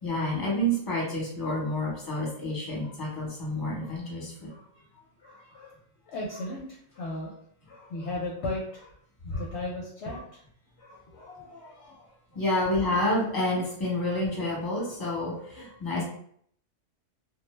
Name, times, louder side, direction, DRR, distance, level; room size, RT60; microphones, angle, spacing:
voice 1, 0.0-4.5 11.3-11.7 12.3-16.0, left 1 dB, 20° left, -5 dB, 0.9 m, -29 dB
voice 2, 2.8-3.2 3.8-3.9 4.5-4.6 5.2-5.7 6.1-7.3 7.7-8.9 9.2-10.4 10.8-11.3 14.1-14.2, left 2 dB, 65° left, -3 dB, 0.8 m, -37 dB
2.2 x 2.0 x 3.1 m, 0.63 s
omnidirectional pair, 1.3 m